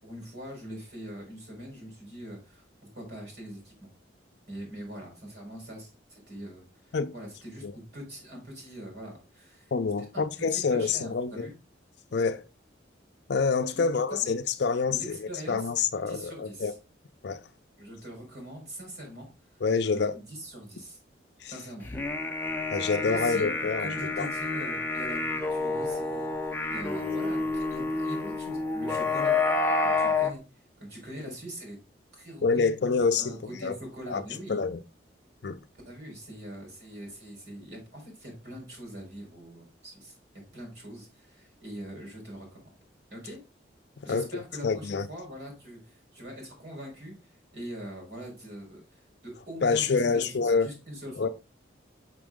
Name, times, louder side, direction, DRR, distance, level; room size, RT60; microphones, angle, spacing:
voice 1, 0.0-3.9 4.5-7.7 7.9-9.7 10.0-11.5 13.7-14.3 14.9-15.7 16.1-16.8 17.8-21.0 21.5-21.9 23.0-23.5 23.8-29.4 29.8-30.4 30.8-31.8 32.1-32.8 33.2-34.6 35.8-40.2 40.5-42.7 43.1-43.4 44.0-51.3, equal, 60° right, 4.4 m, -42 dB
voice 2, 9.7-11.5 12.1-12.4 13.3-16.7 17.2-17.4 19.6-20.2 21.4-21.5 22.7-23.9 24.2-24.3 32.4-33.3 33.6-33.8 34.1-34.2 34.5-34.8 35.4-35.6 44.1-44.3 44.6-45.1 49.6-50.7 51.2-51.3, left 5 dB, 65° left, 0.5 m, -27 dB
sound 1, 21.8-30.3, left 3 dB, 10° left, 0.8 m, -29 dB
6.1 x 6.0 x 3.6 m
head